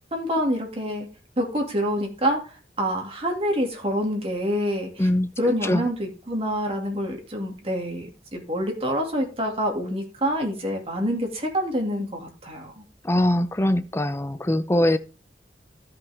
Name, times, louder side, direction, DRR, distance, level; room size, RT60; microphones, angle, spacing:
voice 1, 0.1-1.1 1.4-2.4 2.8-5.1 5.4-12.8, equal, 35° right, 2.3 m, -26 dB
voice 2, 5.0-5.3 5.6-5.8 13.0-15.0, left 1 dB, 15° left, 0.5 m, -22 dB
13.0 x 5.8 x 3.4 m
head